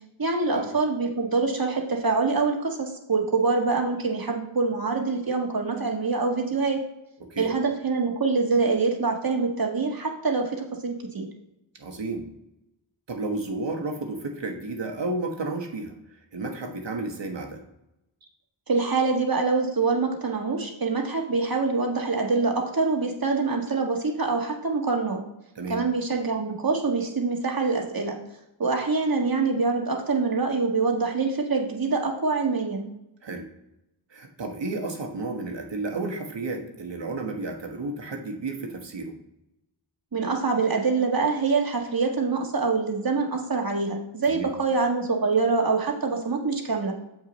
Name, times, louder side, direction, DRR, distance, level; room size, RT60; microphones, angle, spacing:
voice 1, 0.2-6.8 7.4-11.3 18.7-25.2 25.7-28.2 28.6-32.9 40.1-46.9, right 4 dB, 45° right, 1 dB, 1.7 m, -25 dB
voice 2, 11.8-12.3 13.1-15.9 16.3-17.6 25.5-25.8 33.2-33.5 34.1-39.2 44.3-44.5, right 2 dB, 60° right, 3 dB, 1.4 m, -32 dB
7.3 x 6.2 x 4.1 m, 0.88 s
wide cardioid pair, 70°, 48 cm